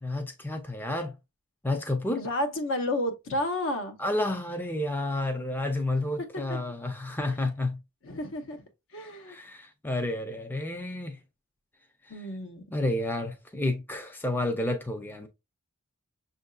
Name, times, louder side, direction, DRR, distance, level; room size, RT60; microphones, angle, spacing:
voice 1, 0.0-1.2 1.6-2.2 4.0-7.8 9.3-11.2 12.0-12.3 12.7-15.3, left 1 dB, 10° left, 0.4 m, -30 dB
voice 2, 2.2-4.0 6.5-6.6 8.0-8.6 8.9-9.4 12.1-12.6, left 1 dB, 60° left, 0.8 m, -31 dB
6.5 x 2.6 x 2.3 m
head